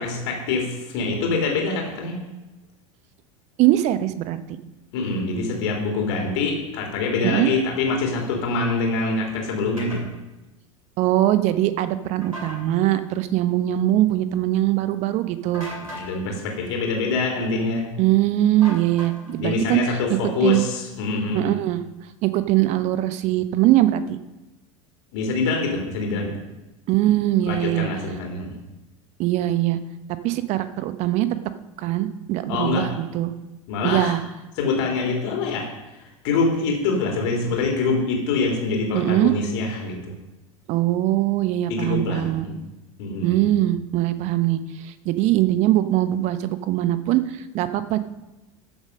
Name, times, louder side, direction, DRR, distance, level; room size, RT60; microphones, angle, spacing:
voice 1, 0.0-2.2 4.9-10.1 15.8-17.9 19.4-21.4 25.1-26.3 27.5-28.6 32.5-32.9 33.7-34.2 34.6-40.1 41.7-42.6 43.0-43.5, left 3 dB, 55° left, 1 dB, 3.4 m, -25 dB
voice 2, 3.6-4.4 7.2-7.5 11.0-15.7 18.0-19.8 20.4-20.7 21.3-21.8 22.2-24.2 26.9-27.9 29.2-29.8 30.2-31.3 31.8-33.3 33.8-34.2 38.9-39.3 40.7-42.5 43.2-48.0, right 14 dB, 40° right, 13 dB, 0.9 m, -21 dB
sound 1, 9.8-10.0 12.2-12.6 15.5-16.1 18.6-19.4, left 1 dB, 85° right, 3.0 m, -36 dB
13.5 x 7.4 x 5.3 m, 1.0 s
figure-of-eight pair, 80°, 17 cm